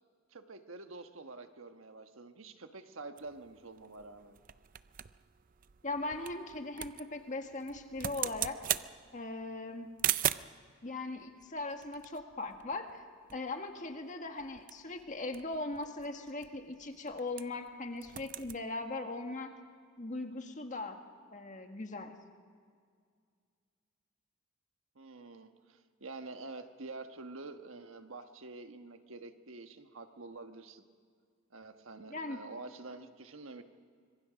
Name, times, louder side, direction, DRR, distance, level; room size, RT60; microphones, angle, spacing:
voice 1, 0.3-4.4 24.9-30.8 31.5-33.6, right 3 dB, 75° right, 7 dB, 1.3 m, -47 dB
sound 1, 3.2-10.6 11.4-13.0 13.3-13.4 13.7-14.0 14.4-17.7 17.9-18.6, right 11 dB, 40° right, 0.4 m, -39 dB
voice 2, 5.8-8.6 9.1-9.9 10.8-13.0 13.3-19.5 20.0-21.0 21.3-22.1 32.1-32.4, left 2 dB, 35° left, 5 dB, 1.6 m, -39 dB
25.5 x 23.0 x 5.1 m, 2.1 s
head